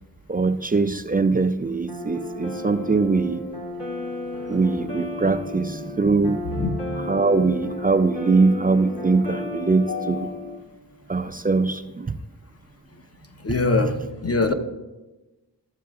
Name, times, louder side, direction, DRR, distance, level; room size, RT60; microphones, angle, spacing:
voice 1, 0.3-3.4 4.5-6.6 7.1-10.3 11.1-12.2, right 3 dB, 20° right, 10 dB, 0.4 m, -22 dB
sound 1, 1.9-10.6, left 2 dB, 75° left, 2.6 m, -33 dB
voice 2, 9.9-10.3 12.9-14.5, left 3 dB, 35° left, 7 dB, 0.8 m, -25 dB
13.0 x 7.4 x 2.4 m, 1.1 s
cardioid pair, 45°, 42 cm